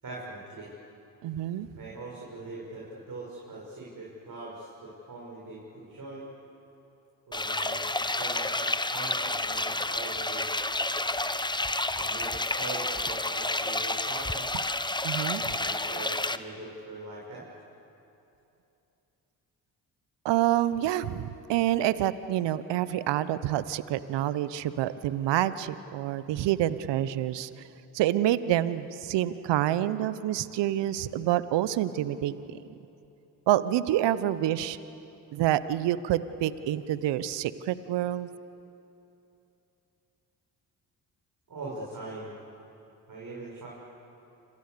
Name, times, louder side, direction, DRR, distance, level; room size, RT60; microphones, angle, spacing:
voice 1, 0.0-0.7 1.8-6.3 7.3-10.7 11.9-14.5 15.4-17.5 41.5-42.3 43.1-43.7, right 2 dB, 45° right, -4 dB, 7.2 m, -42 dB
voice 2, 1.2-1.7 15.0-15.5 20.2-27.5 27.9-32.6 33.5-34.8 35.3-38.3, right 12 dB, 65° right, 15 dB, 1.1 m, -27 dB
sound 1, 7.3-16.4, left 2 dB, 10° left, 1.1 m, -30 dB
29.0 x 27.0 x 6.9 m, 2.9 s
hypercardioid pair, 45°, 46 cm